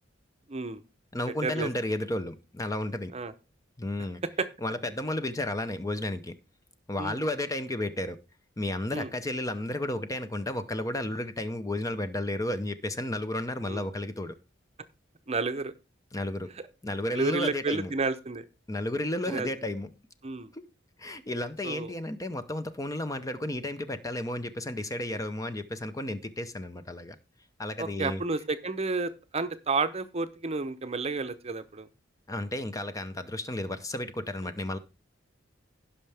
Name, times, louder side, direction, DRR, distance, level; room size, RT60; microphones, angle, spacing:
voice 1, 0.5-0.8 1.4-1.7 3.1-3.3 4.4-4.5 7.0-7.2 8.9-9.1 13.6-13.8 15.3-15.7 16.6-16.7 17.1-18.4 19.3-19.7 20.2-20.5 21.6-21.9 27.8-31.9, right 3 dB, 35° right, 0.7 m, -31 dB
voice 2, 1.1-3.1 3.8-4.2 4.6-6.3 6.9-8.2 8.6-14.3 16.1-16.5 16.8-17.9 18.7-19.9 20.5-20.6 21.0-27.2 27.6-28.2 32.3-34.8, left 1 dB, 20° left, 0.7 m, -32 dB
16.5 x 5.7 x 3.4 m
head